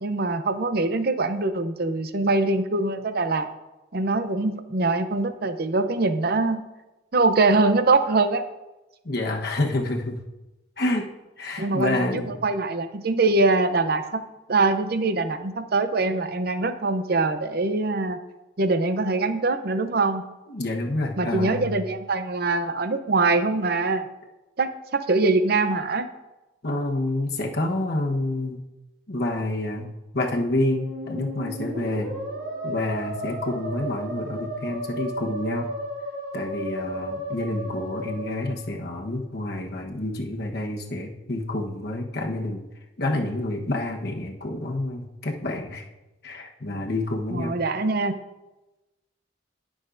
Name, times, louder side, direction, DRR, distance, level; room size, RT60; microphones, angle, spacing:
voice 1, 0.0-3.5 3.9-6.6 7.1-8.5 11.6-18.2 18.6-20.2 21.2-24.1 24.6-26.1 47.3-48.2, right 3 dB, 50° right, 9 dB, 0.6 m, -23 dB
voice 2, 9.0-10.2 10.8-11.1 11.4-12.3 20.5-21.7 26.6-28.6 29.1-32.2 32.6-35.7 36.3-42.6 43.0-45.8 46.2-47.5, left 1 dB, 55° left, 1 dB, 1.2 m, -28 dB
Musical instrument, 30.5-39.2, right 1 dB, 90° right, 2.8 m, -34 dB
18.0 x 6.3 x 2.6 m, 1.0 s
head